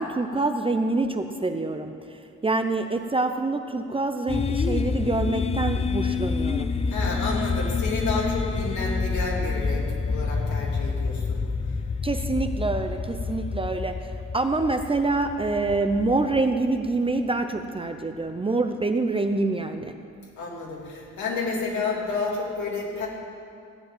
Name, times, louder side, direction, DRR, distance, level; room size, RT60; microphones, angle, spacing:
voice 1, 0.0-6.7 12.0-14.1 14.3-19.9, right 3 dB, 20° right, 7 dB, 0.7 m, -26 dB
sound 1, 4.3-17.2, left 4 dB, 20° left, 0.4 m, -28 dB
voice 2, 6.9-11.4 20.4-23.1, left 3 dB, 70° left, -2 dB, 3.2 m, -30 dB
15.0 x 5.2 x 9.5 m, 2.5 s
cardioid pair, 90°, 30 cm